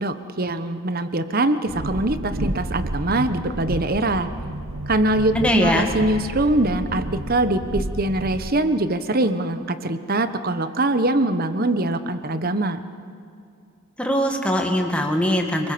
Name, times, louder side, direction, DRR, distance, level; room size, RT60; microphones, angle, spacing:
voice 1, 0.0-4.3 4.9-12.8, right 1 dB, 45° right, 10 dB, 1.2 m, -23 dB
Train, 1.7-8.5, right 1 dB, 90° right, 1.3 m, -31 dB
voice 2, 5.3-5.9 14.0-15.7, equal, 5° left, 2 dB, 2.0 m, -21 dB
29.5 x 21.0 x 7.0 m, 2.4 s
head